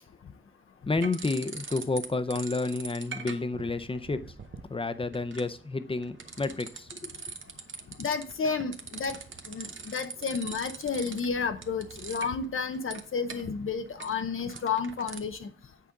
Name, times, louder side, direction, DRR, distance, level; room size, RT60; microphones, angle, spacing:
voice 1, 0.9-4.4 4.7-7.1, left 3 dB, 25° left, 0.5 m, -30 dB
sound 1, 1.0-2.1 2.3-15.2, right 5 dB, 70° right, 0.8 m, -43 dB
voice 2, 8.0-9.2 9.5-15.5, left 5 dB, 80° left, 0.6 m, -31 dB
8.4 x 5.1 x 3.6 m
wide cardioid pair, 115°, 21 cm